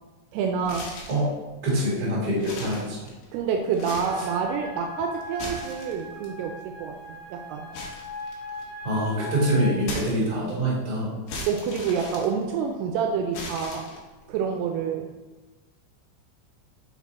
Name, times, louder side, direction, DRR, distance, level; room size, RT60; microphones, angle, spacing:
voice 1, 0.3-0.9 3.3-7.7 11.5-13.9 14.3-15.1, right 6 dB, 85° right, 3 dB, 2.4 m, -28 dB
sound 1, 0.6-1.3 1.8-1.9 2.3-3.4 3.7-4.4 5.2-6.3 7.7-8.8 9.8-10.6 11.3-12.8 13.3-14.2, left 2 dB, 65° left, 2.5 m, -38 dB
voice 2, 1.6-3.0 8.8-11.1, right 1 dB, 30° right, -6 dB, 1.9 m, -25 dB
sound 2, 4.1-9.7, left 2 dB, 85° left, 3.0 m, -39 dB
6.2 x 4.2 x 4.0 m, 1.2 s
omnidirectional pair, 4.8 m